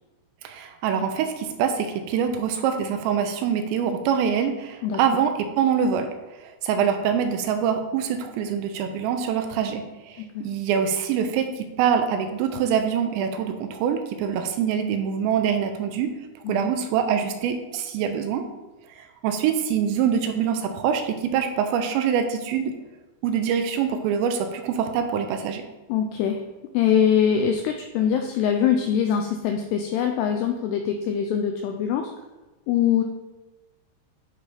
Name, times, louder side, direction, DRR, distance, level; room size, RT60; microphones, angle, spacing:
voice 1, 0.4-6.1 6.4-16.1 16.5-18.4 19.0-22.7 23.2-25.6, right 7 dB, 85° right, 7 dB, 2.8 m, -24 dB
voice 2, 25.9-26.4 26.7-32.1 32.7-33.0, left 8 dB, 85° left, 4 dB, 2.4 m, -23 dB
9.7 x 3.4 x 3.9 m, 1.1 s
omnidirectional pair, 5.2 m